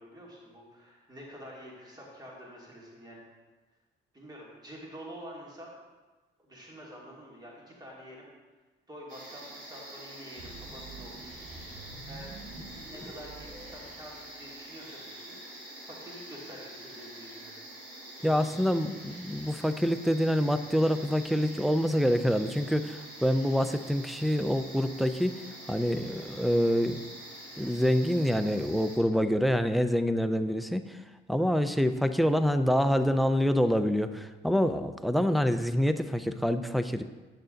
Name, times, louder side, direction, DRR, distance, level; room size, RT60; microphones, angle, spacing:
voice 1, 0.0-3.2 4.1-5.7 6.4-8.3 8.9-11.2 12.1-12.3 12.9-15.4 15.8-17.5 18.2-18.5, equal, 20° right, -4 dB, 2.5 m, -47 dB
sound 1, 9.1-29.0, right 1 dB, 75° right, 2.9 m, -46 dB
sound 2, 10.4-14.6, right 3 dB, 50° right, 1.2 m, -47 dB
voice 2, 18.2-27.0 27.6-31.0 31.3-37.0, equal, ahead, 10 dB, 0.5 m, -26 dB
9.8 x 6.7 x 3.9 m, 1.3 s
cardioid pair, 90°, 20 cm